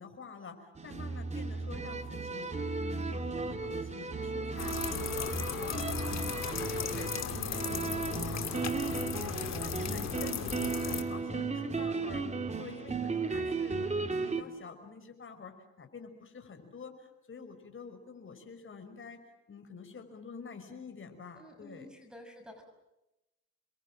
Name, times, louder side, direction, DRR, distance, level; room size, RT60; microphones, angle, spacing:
voice 1, 0.0-2.5 2.8-5.3 5.6-12.2 12.6-19.2 19.5-21.9, left 5 dB, 40° left, 6 dB, 5.8 m, -48 dB
sound 1, 0.8-14.4, right 4 dB, 20° right, 2.5 m, -35 dB
sound 2, 4.6-11.0, left 8 dB, 60° left, 2.5 m, -37 dB
voice 2, 11.4-11.9 21.3-22.6, left 1 dB, 5° right, 5 dB, 6.2 m, -52 dB
29.0 x 22.5 x 7.6 m, 0.95 s
cardioid pair, 90°, 30 cm